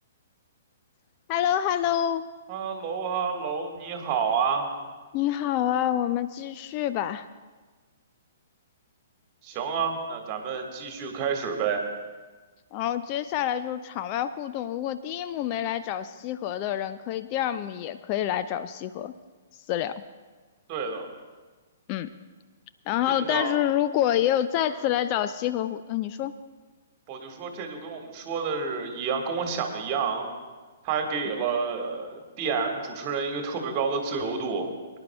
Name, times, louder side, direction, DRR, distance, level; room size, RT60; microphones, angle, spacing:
voice 1, 1.3-2.2 5.1-7.3 12.7-19.1 19.7-20.0 21.9-22.1 22.9-26.3, left 11 dB, 35° left, 12 dB, 0.3 m, -27 dB
voice 2, 2.5-4.7 9.4-11.8 20.7-21.1 23.2-23.6 27.1-30.3 30.8-34.6, right 5 dB, 35° right, 3 dB, 1.7 m, -29 dB
23.5 x 10.5 x 2.3 m, 1.3 s
figure-of-eight pair, 120°, 0 cm